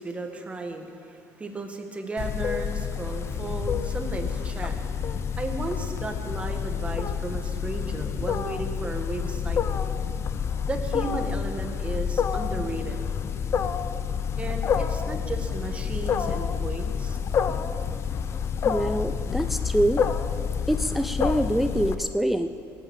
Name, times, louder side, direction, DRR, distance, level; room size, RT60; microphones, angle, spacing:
voice 1, 0.0-4.8 5.4-9.9 10.7-13.0 14.4-17.2, right 3 dB, 20° right, 4 dB, 1.7 m, -35 dB
Wild animals, 2.2-21.9, left 7 dB, 40° left, 0.7 m, -28 dB
voice 2, 18.6-20.0 20.7-22.5, right 1 dB, ahead, 9 dB, 0.4 m, -25 dB
20.0 x 9.6 x 7.4 m, 2.7 s
cardioid pair, 130°, 7 cm